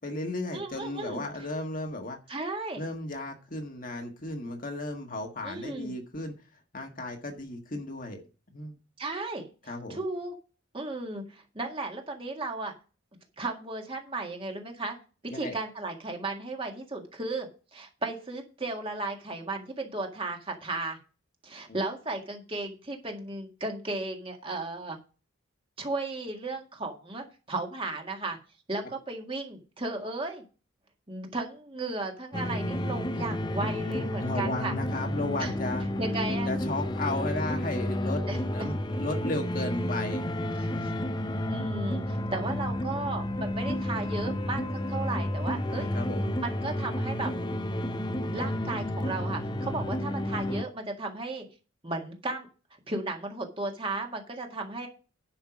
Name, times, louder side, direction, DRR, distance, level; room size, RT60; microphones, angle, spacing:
voice 1, 0.0-2.2 2.7-6.3 6.7-8.2 8.5-8.7 9.7-10.0 15.3-15.6 34.2-35.8 36.4-40.2 45.7-46.3, left 2 dB, 40° left, 3 dB, 1.6 m, -34 dB
voice 2, 0.5-1.2 2.3-2.8 5.4-5.9 9.0-9.4 9.9-10.3 10.7-12.7 13.4-15.0 15.3-21.0 21.4-25.0 25.8-28.4 28.7-30.4 31.1-34.7 35.4-35.5 36.0-36.5 38.3-38.4 40.6-40.9 41.5-45.9 46.4-47.3 48.3-51.5 51.8-52.5 52.9-54.9, right 2 dB, 25° right, 2 dB, 1.8 m, -35 dB
fountain swell, 32.3-50.6, left 1 dB, 20° left, 0.6 m, -31 dB
10.5 x 5.7 x 6.0 m, 0.34 s
head